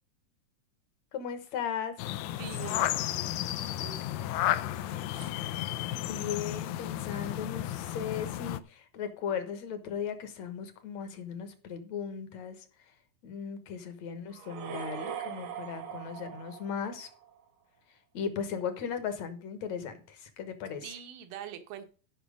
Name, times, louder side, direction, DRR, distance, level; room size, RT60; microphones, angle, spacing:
voice 1, 1.1-2.1 5.9-12.7 13.2-17.1 18.1-20.9, left 7 dB, 60° left, 2.2 m, -37 dB
sound 1, 2.0-8.6, left 13 dB, 80° left, 1.7 m, -33 dB
voice 2, 2.3-5.3 20.8-21.9, right 9 dB, 80° right, 2.7 m, -46 dB
sound 2, 14.3-17.4, right 8 dB, 65° right, 1.9 m, -41 dB
12.5 x 5.8 x 5.0 m
omnidirectional pair, 3.8 m